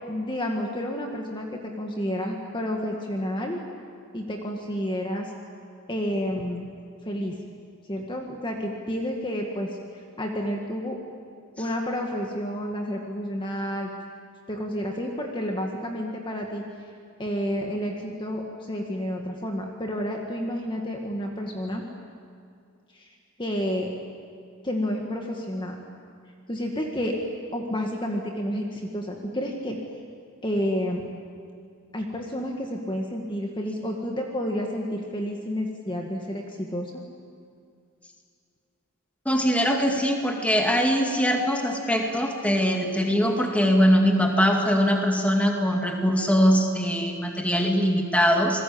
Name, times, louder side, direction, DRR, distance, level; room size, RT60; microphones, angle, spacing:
voice 1, 0.1-3.6 4.1-5.3 5.9-6.7 7.1-7.3 7.9-9.7 10.2-11.0 11.6-13.9 14.5-16.6 17.2-21.8 22.9-23.0 23.4-23.9 24.6-25.8 26.5-27.2 27.5-29.8 30.4-31.0 31.9-36.9, equal, 20° left, 1 dB, 1.9 m, -30 dB
voice 2, 39.3-48.6, equal, 5° left, 2 dB, 2.2 m, -22 dB
27.5 x 20.5 x 8.7 m, 2.3 s
head